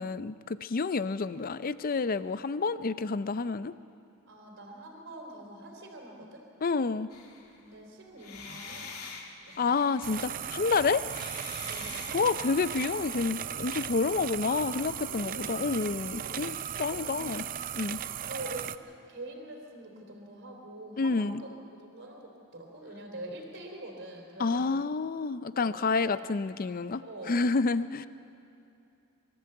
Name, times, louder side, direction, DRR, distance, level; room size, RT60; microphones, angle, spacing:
voice 1, 0.0-3.7 6.6-7.1 9.6-11.0 12.1-17.4 17.8-18.0 21.0-21.4 24.4-27.0 27.3-28.1, left 4 dB, 40° left, 14 dB, 0.5 m, -29 dB
voice 2, 4.3-6.4 7.5-8.8 9.4-9.8 11.7-12.3 15.1-15.4 16.1-16.5 16.9-17.4 18.3-21.5 21.8-24.8 25.6-26.1 27.0-27.3, right 1 dB, 55° right, 1 dB, 3.4 m, -45 dB
sound 1, 7.1-7.8 8.2-10.5 11.0-13.4, left 4 dB, 85° left, 2.4 m, -46 dB
sound 2, 10.0-18.8, right 10 dB, 40° right, 0.4 m, -37 dB
24.0 x 14.0 x 7.8 m, 2.7 s
head